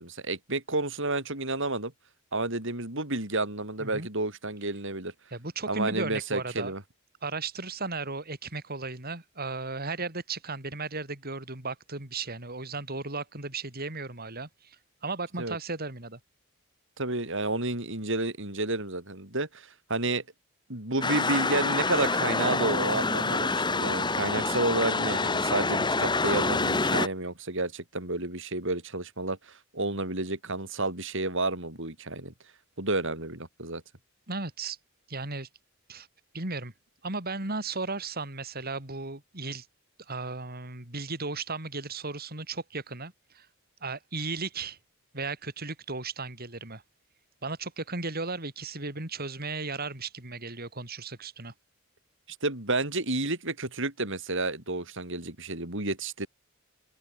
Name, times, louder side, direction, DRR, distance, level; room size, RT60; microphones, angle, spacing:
voice 1, 0.0-1.9 2.3-5.1 5.7-6.8 15.4-15.6 17.0-20.2 20.7-32.3 32.8-33.8 52.4-56.3, right 2 dB, 60° right, 7.5 m, -30 dB
voice 2, 5.3-6.7 7.2-14.8 15.0-16.2 34.3-34.8 35.1-35.5 35.9-36.1 36.3-36.7 37.0-39.7 40.1-43.5 43.8-44.8 45.1-46.8 47.4-51.5, right 3 dB, 45° right, 4.9 m, -35 dB
sound 1, 21.0-27.1, left 3 dB, 20° left, 2.1 m, -27 dB
head